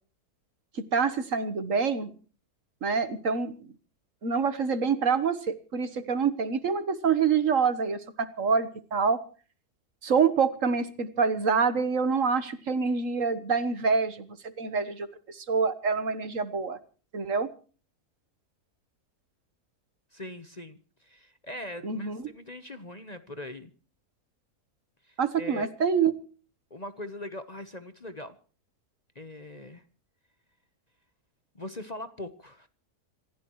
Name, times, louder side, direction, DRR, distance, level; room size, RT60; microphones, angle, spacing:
voice 1, 0.7-2.1 2.8-3.7 4.2-9.2 10.0-16.8 17.1-17.5 21.8-22.3 25.2-26.1, right 5 dB, 55° right, 13 dB, 1.6 m, -26 dB
voice 2, 20.1-23.7 25.0-25.7 26.7-28.4 29.1-29.8 31.5-32.7, left 1 dB, 30° left, 10 dB, 1.1 m, -41 dB
27.0 x 15.0 x 3.1 m, 0.39 s
omnidirectional pair, 1.7 m